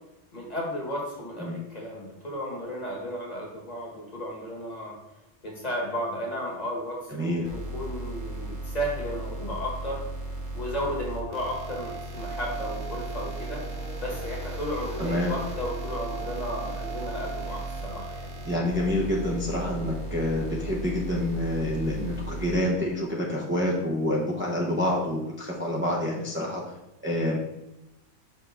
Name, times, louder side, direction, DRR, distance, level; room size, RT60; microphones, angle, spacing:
voice 1, 0.3-5.0 5.4-10.0 10.5-13.6 14.0-18.3, equal, 35° left, -2 dB, 1.6 m, -34 dB
voice 2, 7.1-7.5 15.0-15.4 18.4-26.6 27.0-27.4, left 1 dB, 10° right, -4 dB, 0.7 m, -27 dB
sound 1, 7.4-22.5, right 1 dB, 65° right, 1.4 m, -36 dB
sound 2, 10.8-21.6 21.9-22.0 22.3-22.5 23.0-23.4 23.9-24.0 24.2-24.7 25.0-25.1, right 5 dB, 45° right, 1.1 m, -43 dB
5.8 x 5.5 x 3.5 m, 0.93 s
omnidirectional pair, 1.3 m